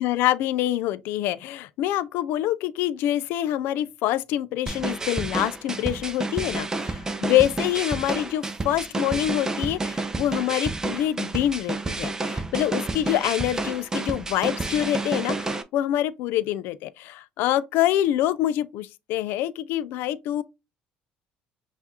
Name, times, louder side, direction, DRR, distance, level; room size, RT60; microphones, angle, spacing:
voice 1, 0.0-6.7 7.2-20.4, left 13 dB, 75° left, 0.3 m, -25 dB
sound 1, 4.7-15.6, right 3 dB, 15° right, 0.5 m, -30 dB
5.6 x 2.4 x 2.8 m
cardioid pair, 115°, 4 cm